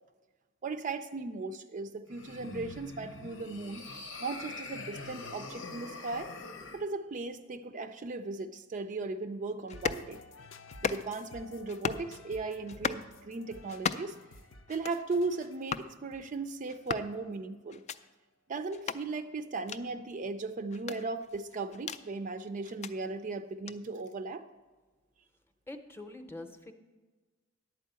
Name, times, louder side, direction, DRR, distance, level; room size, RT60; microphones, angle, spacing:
voice 1, 0.6-3.8 4.2-6.3 6.7-10.2 10.8-14.1 14.7-17.8 18.5-24.5, right 3 dB, 40° right, 9 dB, 0.4 m, -37 dB
sound 1, 2.1-6.8, left 3 dB, 90° left, 1.1 m, -44 dB
sound 2, 9.7-17.6, left 3 dB, 75° left, 0.6 m, -54 dB
sound 3, 9.7-10.1 10.7-11.3 11.7-12.1 12.7-13.1 13.7-14.2 14.7-15.0 15.7-15.9 16.7-17.1 17.7-18.0 18.7-19.0 19.7-19.8 20.7-22.0 22.6-22.9 23.7-23.8, left 6 dB, 35° left, 0.3 m, -36 dB
voice 2, 25.7-26.7, left 2 dB, 10° left, 6 dB, 0.7 m, -44 dB
11.0 x 4.6 x 8.0 m, 1.3 s
head